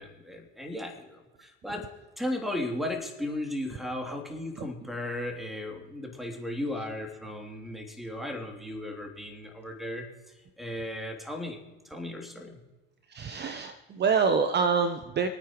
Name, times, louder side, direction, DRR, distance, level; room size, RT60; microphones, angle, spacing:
voice 1, 0.0-1.9 2.2-10.1 10.6-12.6, left 1 dB, ahead, 2 dB, 3.1 m, -36 dB
voice 2, 13.1-15.3, right 5 dB, 35° right, 10 dB, 1.0 m, -26 dB
26.0 x 9.4 x 3.1 m, 1.1 s
hypercardioid pair, 70°, 30 cm